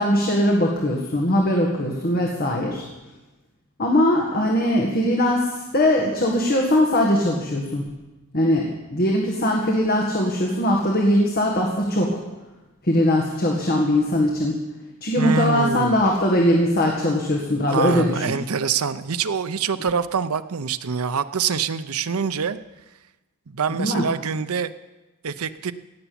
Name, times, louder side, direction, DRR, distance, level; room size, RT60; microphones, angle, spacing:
voice 1, 0.0-2.8 3.8-7.8 8.3-12.2 12.8-14.6 15.0-18.3 23.8-24.1, left 1 dB, 45° left, 0 dB, 1.8 m, -21 dB
voice 2, 15.2-16.1 17.7-22.6 23.5-24.7 25.2-25.7, right 6 dB, 85° right, 12 dB, 0.7 m, -25 dB
17.5 x 7.1 x 8.6 m, 1.1 s
head